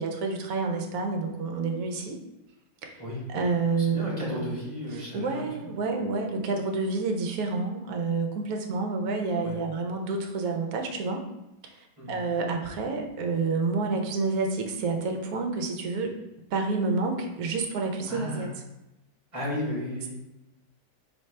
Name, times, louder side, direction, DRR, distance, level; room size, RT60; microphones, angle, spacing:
voice 1, 0.0-2.2 2.8-3.0 3.3-4.6 5.1-11.2 11.7-11.8 12.1-16.1 16.5-18.5, right 3 dB, 65° right, 3 dB, 1.0 m, -29 dB
voice 2, 3.8-5.7 9.4-9.5 12.0-12.2 18.1-18.5 19.3-20.1, left 1 dB, 20° right, -6 dB, 1.4 m, -34 dB
4.3 x 3.3 x 3.2 m, 0.93 s
omnidirectional pair, 1.8 m